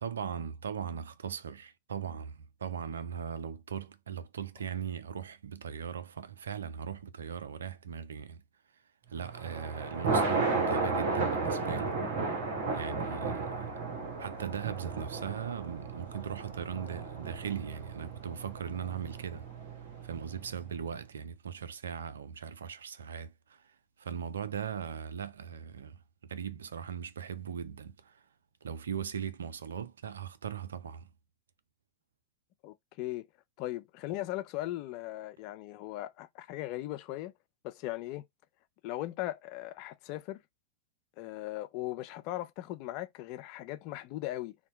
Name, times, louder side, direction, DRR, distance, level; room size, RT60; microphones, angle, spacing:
voice 1, 0.0-8.4 9.1-12.2 12.7-13.7 14.2-19.5 20.0-28.2 28.6-31.1, right 8 dB, 70° right, 0.4 m, -39 dB
Thunder, 9.2-20.5, right 3 dB, 50° right, 1.0 m, -34 dB
voice 2, 32.6-33.3 33.6-37.3 37.6-38.2 38.8-40.4 41.2-44.6, left 15 dB, 45° left, 0.4 m, -38 dB
2.7 x 2.1 x 4.0 m
figure-of-eight pair, 90°, 0 cm